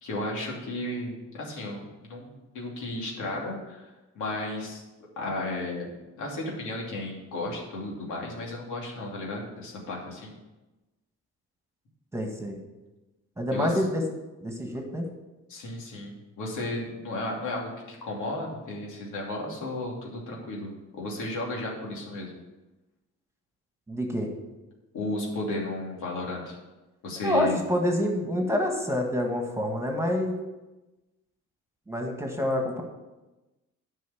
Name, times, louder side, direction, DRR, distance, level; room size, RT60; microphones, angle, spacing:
voice 1, 0.0-4.8 5.2-10.3 13.5-13.7 15.5-22.3 24.9-26.6 27.0-27.6, left 2 dB, 80° left, -2 dB, 2.9 m, -34 dB
voice 2, 12.1-12.6 13.4-14.0 14.4-15.1 23.9-24.3 27.2-30.4 31.9-32.8, left 1 dB, 10° right, 2 dB, 1.9 m, -27 dB
9.5 x 5.6 x 7.0 m, 1.1 s
cardioid pair, 90°, 30 cm